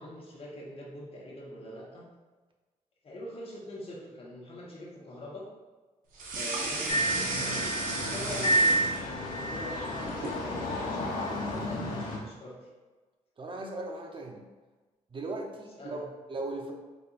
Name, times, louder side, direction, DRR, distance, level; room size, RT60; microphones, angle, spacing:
voice 1, 0.0-2.1 3.0-5.5 6.3-7.7 7.9-12.6 15.7-16.0, left 1 dB, 45° left, -4 dB, 1.3 m, -43 dB
sound 1, 6.1-9.4 9.7-10.4, right 2 dB, 80° right, 0.8 m, -34 dB
sound 2, 6.9-12.2, right 1 dB, 85° left, 0.8 m, -30 dB
voice 2, 13.4-14.4 15.1-16.7, right 2 dB, 40° right, 2 dB, 0.7 m, -38 dB
4.2 x 3.4 x 2.5 m, 1.3 s
cardioid pair, 70°, 14 cm